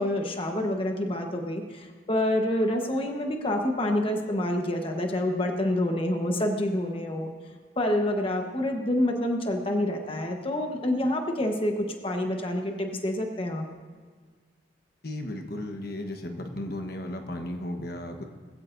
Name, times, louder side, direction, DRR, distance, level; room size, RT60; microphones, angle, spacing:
voice 1, 0.0-7.3 7.8-11.7 12.0-13.7, left 1 dB, 30° left, 3 dB, 1.2 m, -27 dB
voice 2, 15.0-18.2, left 1 dB, 60° left, 4 dB, 1.2 m, -35 dB
20.5 x 16.0 x 2.6 m, 1.5 s
head